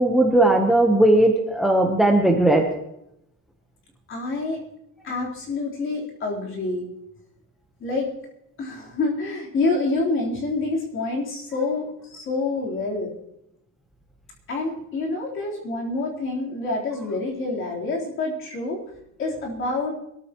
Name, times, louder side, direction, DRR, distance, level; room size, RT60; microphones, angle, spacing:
voice 1, 0.0-2.6, right 1 dB, ahead, 2 dB, 1.0 m, -17 dB
voice 2, 4.1-4.6 5.0-6.9 7.8-8.1 8.6-13.1 14.5-18.8 19.2-19.9, left 3 dB, 40° left, -3 dB, 3.9 m, -27 dB
23.0 x 13.5 x 3.0 m, 0.80 s
cardioid pair, 180°, 32 cm